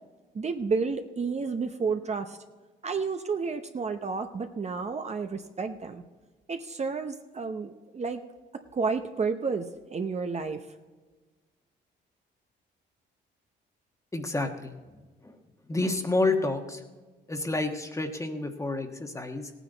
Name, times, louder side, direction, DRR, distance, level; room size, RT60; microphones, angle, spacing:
voice 1, 0.3-2.4 2.8-6.0 6.5-8.2 8.7-10.7, right 4 dB, 35° right, 6 dB, 0.8 m, -31 dB
voice 2, 14.1-14.7 15.2-15.4 15.7-16.8 17.3-19.5, left 2 dB, 15° left, 5 dB, 1.4 m, -29 dB
17.0 x 9.2 x 4.0 m, 1.3 s
cardioid pair, 90°, 20 cm